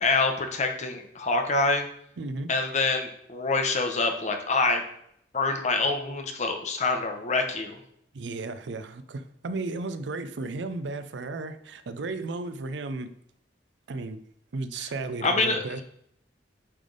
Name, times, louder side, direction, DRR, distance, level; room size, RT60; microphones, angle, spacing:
voice 1, 0.0-1.9 2.5-4.8 5.3-7.8 15.2-15.8, left 3 dB, 40° left, 5 dB, 0.8 m, -26 dB
voice 2, 2.2-2.5 8.1-13.1 13.9-14.2 14.5-15.8, right 3 dB, 80° right, 11 dB, 0.5 m, -34 dB
8.7 x 3.4 x 3.9 m, 0.70 s
head